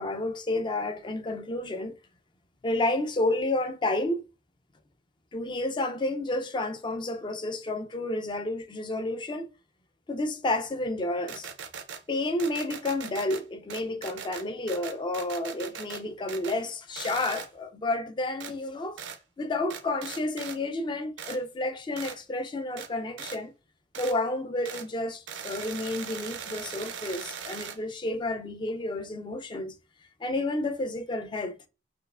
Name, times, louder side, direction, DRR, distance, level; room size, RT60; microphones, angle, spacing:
voice 1, 0.0-2.0 2.6-4.2 5.3-9.5 10.1-11.5 12.1-19.0 19.4-23.5 24.0-29.7 30.2-31.6, left 2 dB, 25° left, 0.4 m, -30 dB
sound 1, 11.3-12.0 12.4-13.4 13.7-16.0 16.3-16.6 17.0-17.5 18.4-18.5 19.0-19.2 19.7-20.6 21.2-21.4 22.0-22.2 22.8-22.9 23.2-23.4 23.9-24.2 24.6-24.9 25.3-27.8, right 7 dB, 80° right, 0.5 m, -39 dB
4.3 x 2.3 x 2.3 m
head